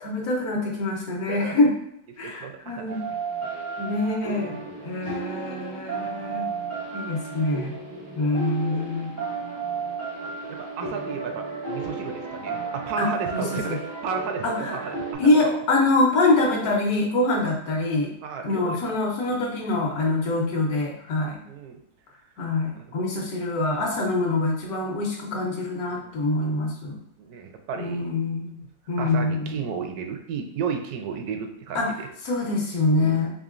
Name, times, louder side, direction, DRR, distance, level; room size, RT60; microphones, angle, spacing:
voice 1, 0.0-1.7 2.2-3.0 3.8-4.5 4.8-6.5 6.9-7.7 8.2-9.1 13.0-13.1 13.3-13.8 14.4-14.9 15.2-18.1 18.4-21.4 22.4-27.0 27.8-28.6 28.9-29.6 31.7-31.9 32.2-33.3, left 2 dB, 70° left, 0 dB, 1.3 m, -25 dB
voice 2, 1.3-1.6 2.2-2.9 4.5-5.2 6.7-6.9 8.2-8.4 8.7-8.9 10.2-15.6 18.2-18.8 19.3-19.4 20.0-20.4 21.5-21.8 22.7-22.9 25.9-26.2 27.2-28.1 29.0-32.1 32.9-33.3, right 6 dB, 75° right, 5 dB, 1.1 m, -34 dB
sound 1, 2.9-15.1, right 4 dB, 35° right, 0.3 m, -33 dB
3.7 x 3.6 x 2.4 m, 0.75 s
omnidirectional pair, 1.7 m